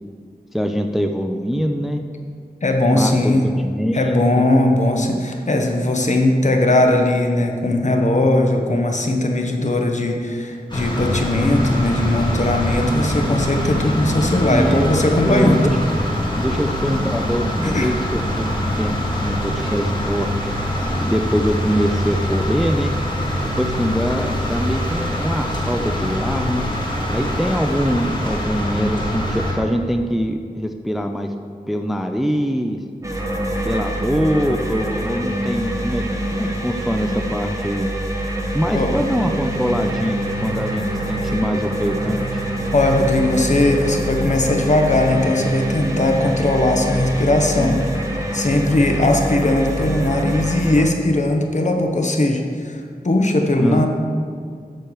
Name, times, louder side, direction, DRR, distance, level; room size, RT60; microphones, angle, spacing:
voice 1, 0.5-2.0 2.9-4.5 14.4-15.8 16.4-19.0 19.2-20.3 21.0-22.9 23.4-26.7 27.1-31.3 31.7-32.8 33.6-36.0 36.3-37.9 38.5-42.4 47.5-47.8 53.6-53.9, equal, ahead, 5 dB, 0.5 m, -23 dB
voice 2, 2.6-3.5 3.9-15.7 17.6-17.9 38.7-38.9 42.7-47.9 48.3-53.9, left 1 dB, 50° left, 3 dB, 1.1 m, -19 dB
sound 1, 10.7-29.5, equal, 30° left, 2.1 m, -23 dB
sound 2, 33.0-50.9, right 1 dB, 20° right, 1.3 m, -25 dB
sound 3, 38.7-46.0, right 5 dB, 80° right, 0.5 m, -33 dB
13.5 x 4.6 x 4.7 m, 2.1 s
wide cardioid pair, 60°, 16 cm